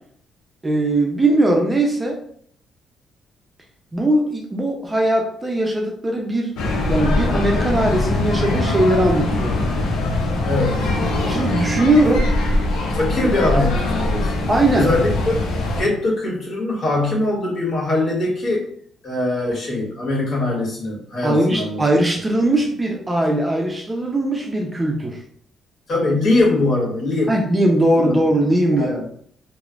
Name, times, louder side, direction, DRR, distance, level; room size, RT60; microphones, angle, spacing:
voice 1, 0.6-2.2 3.9-6.5 6.9-9.6 11.3-12.3 14.5-14.9 21.2-25.2 27.3-29.0, right 1 dB, 20° right, 1 dB, 0.5 m, -19 dB
sound 1, 6.6-15.8, left 2 dB, 90° left, 0.5 m, -21 dB
voice 2, 10.4-10.9 12.9-15.4 15.8-18.7 19.0-21.8 25.9-27.4 28.0-28.2 28.7-29.1, left 2 dB, 60° left, -5 dB, 1.4 m, -22 dB
3.1 x 2.1 x 2.4 m, 0.62 s
cardioid pair, 90°, 0 cm